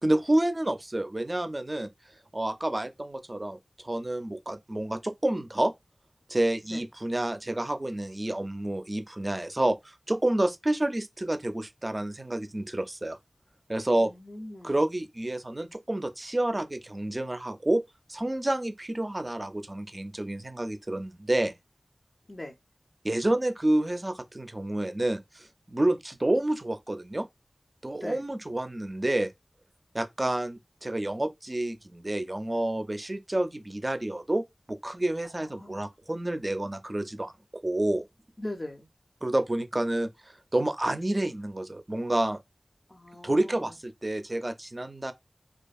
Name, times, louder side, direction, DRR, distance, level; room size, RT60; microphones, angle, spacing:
voice 1, 0.0-1.9 2.3-3.6 3.8-5.7 6.3-13.2 13.7-14.1 14.6-17.8 18.1-21.5 23.0-27.3 27.8-29.3 29.9-37.3 37.6-38.0 39.2-40.1 40.5-42.4 43.2-45.1, right 1 dB, 35° right, 0.4 m, -29 dB
voice 2, 14.0-14.8 22.3-22.5 27.9-28.2 35.2-35.8 38.4-38.9 42.9-43.7, left 1 dB, 40° left, 0.4 m, -40 dB
2.6 x 2.3 x 2.3 m
wide cardioid pair, 45°, 0 cm